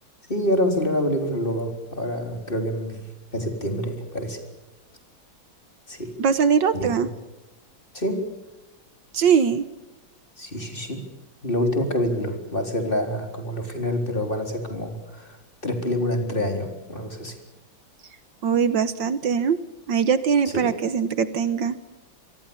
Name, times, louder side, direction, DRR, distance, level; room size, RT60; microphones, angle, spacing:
voice 1, 0.3-3.0 3.3-4.4 5.9-6.1 6.7-6.9 7.9-8.2 10.4-11.0 11.4-17.3 20.5-20.7, equal, 25° left, 4 dB, 4.1 m, -26 dB
voice 2, 6.2-7.1 9.1-9.6 18.4-19.6 19.9-21.8, right 6 dB, 70° right, 13 dB, 1.7 m, -21 dB
26.5 x 23.0 x 7.1 m, 1.0 s
omnidirectional pair, 2.2 m